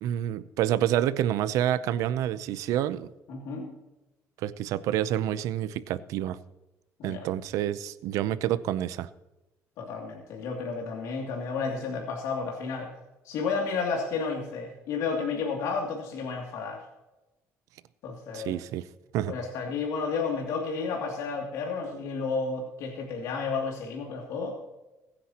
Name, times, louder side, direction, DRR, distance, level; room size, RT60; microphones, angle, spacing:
voice 1, 0.0-3.1 4.4-6.4 7.0-9.1 18.3-18.8 19.1-19.3, right 11 dB, 90° right, 15 dB, 0.6 m, -28 dB
voice 2, 3.3-3.7 7.0-7.3 9.8-12.9 13.2-16.8 18.0-18.6 19.3-24.6, left 4 dB, 85° left, 0 dB, 2.7 m, -32 dB
22.0 x 9.9 x 2.9 m, 1.0 s
cardioid pair, 155°, 5 cm